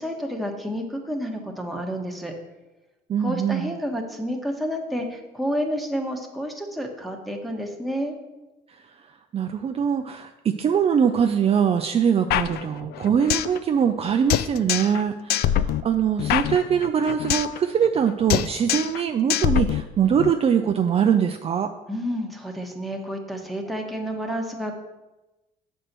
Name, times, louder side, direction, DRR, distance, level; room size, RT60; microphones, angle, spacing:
voice 1, 0.0-2.3 3.2-8.2 21.9-24.8, equal, ahead, 1 dB, 1.3 m, -30 dB
voice 2, 3.1-3.8 9.3-21.7, right 7 dB, 35° right, 6 dB, 0.5 m, -22 dB
sound 1, 12.3-13.6 13.8-13.9 14.3-15.0 15.3-17.6 17.8-18.0 18.3-19.0 19.3-20.3, left 11 dB, 70° left, 0.4 m, -24 dB
7.7 x 4.4 x 6.7 m, 1.1 s
cardioid pair, 110°, 17 cm